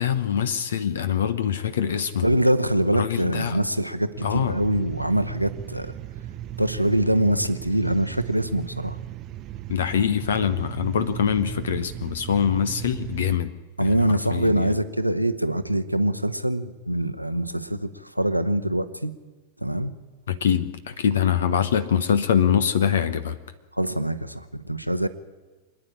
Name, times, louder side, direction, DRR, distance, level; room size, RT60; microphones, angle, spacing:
voice 1, 0.0-2.3 2.9-3.6 4.2-4.6 9.7-13.5 13.8-14.7 20.3-23.4, left 8 dB, 65° left, 14 dB, 0.9 m, -24 dB
voice 2, 2.2-5.9 6.6-9.0 13.8-17.9 18.1-19.1 19.6-19.9 23.8-25.1, right 1 dB, 90° right, 10 dB, 0.9 m, -24 dB
sound 1, 4.2-13.4, right 13 dB, 35° right, 0.7 m, -37 dB
26.0 x 9.9 x 9.9 m, 1.3 s
figure-of-eight pair, 90°, 0 cm